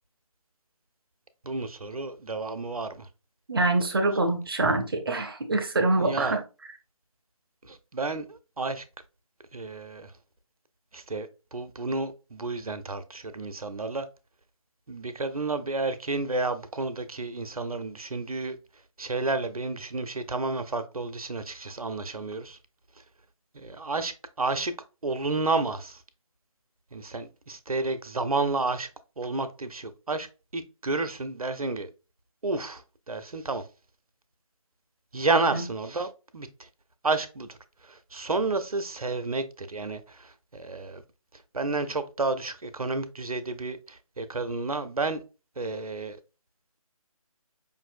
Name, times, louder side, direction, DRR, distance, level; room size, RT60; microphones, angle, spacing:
voice 1, 1.4-3.1 6.0-6.4 7.6-8.8 9.5-10.1 10.9-14.1 14.9-18.6 19.0-22.6 23.5-24.7 25.0-26.0 26.9-28.9 29.2-30.3 30.5-31.9 32.4-32.8 33.1-33.6 35.1-36.5 37.0-37.6 37.9-41.0 41.5-45.2 45.6-46.2, right 3 dB, 85° right, 0.6 m, -31 dB
voice 2, 3.5-6.4 35.5-35.7, right 2 dB, 40° right, 0.6 m, -25 dB
5.2 x 2.6 x 2.5 m
figure-of-eight pair, 150°, 18 cm